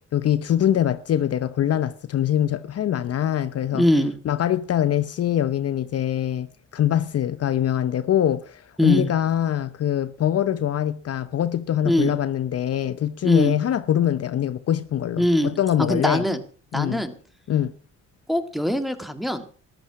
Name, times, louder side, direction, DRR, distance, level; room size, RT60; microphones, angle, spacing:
voice 1, 0.1-3.9 4.2-6.5 6.7-16.3 16.7-17.0 17.5-17.7, left 10 dB, 55° left, 0.8 m, -23 dB
voice 2, 3.7-4.2 8.8-9.1 11.9-12.1 13.2-13.6 15.2-16.4 16.7-17.1 18.3-19.4, equal, ahead, 1.9 m, -22 dB
13.5 x 12.0 x 5.9 m
cardioid pair, 90°, 30 cm